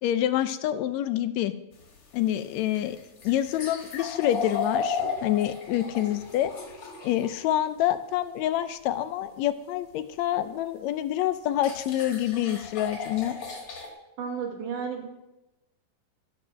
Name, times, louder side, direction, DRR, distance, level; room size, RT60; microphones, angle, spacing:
voice 1, 0.0-1.5 2.1-3.0 3.2-6.5 7.0-13.4, left 12 dB, 80° left, 11 dB, 1.7 m, -27 dB
sound 1, 1.7-7.3 10.4-10.5 11.6-13.9, left 5 dB, 45° left, 2.6 m, -35 dB
voice 2, 14.2-15.1, right 6 dB, 75° right, 1 dB, 3.0 m, -32 dB
12.0 x 8.8 x 6.3 m, 0.94 s
omnidirectional pair, 3.7 m